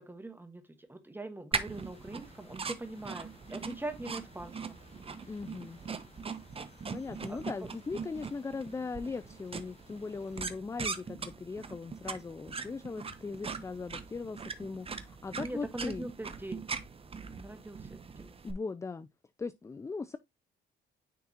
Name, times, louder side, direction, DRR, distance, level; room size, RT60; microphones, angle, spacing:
voice 1, 0.0-4.8 7.3-7.7 15.4-16.6 17.3-18.3, right 2 dB, 10° right, 1.3 m, -42 dB
sound 1, 1.5-18.5, right 5 dB, 30° right, 0.8 m, -41 dB
sound 2, 1.6-10.5, left 4 dB, 35° left, 1.2 m, -60 dB
voice 2, 5.3-5.8 6.9-16.1 18.4-19.1 19.4-20.2, left 4 dB, 15° left, 0.3 m, -39 dB
9.4 x 3.6 x 2.8 m
cardioid pair, 90°, 20 cm